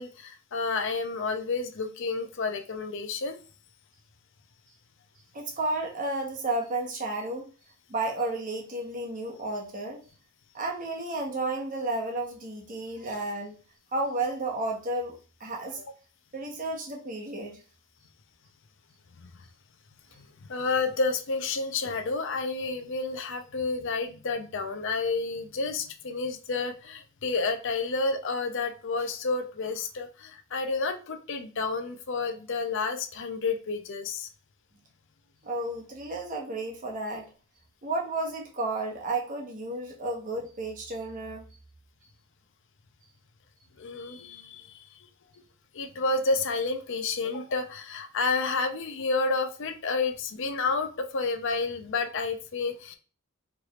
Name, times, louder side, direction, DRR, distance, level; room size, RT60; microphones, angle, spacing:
voice 1, 0.0-3.4 19.2-19.3 20.2-20.3 20.5-34.3 43.8-45.0 45.7-52.9, left 3 dB, 60° left, 0.6 m, -30 dB
voice 2, 5.3-7.4 7.9-10.0 10.5-13.6 13.9-15.8 16.3-17.6 35.4-37.3 37.8-41.4, right 2 dB, 40° right, 1.0 m, -32 dB
4.6 x 3.3 x 2.4 m
head